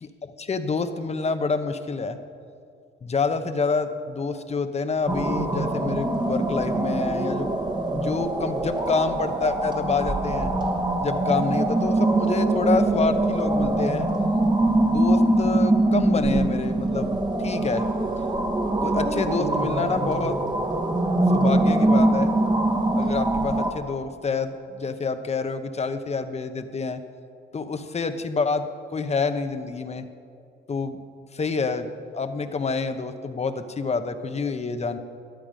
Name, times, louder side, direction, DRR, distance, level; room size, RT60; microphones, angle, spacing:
voice 1, 0.0-2.2 3.0-7.5 7.9-10.5 11.0-14.1 14.8-17.9 18.8-20.4 21.3-22.3 22.9-27.0 27.5-30.1 30.7-31.0 31.3-35.0, left 4 dB, 35° left, 9 dB, 0.9 m, -28 dB
sound 1, 5.1-23.7, right 2 dB, 20° right, 1.4 m, -23 dB
12.5 x 12.0 x 5.1 m, 2.3 s
cardioid pair, 90°, 20 cm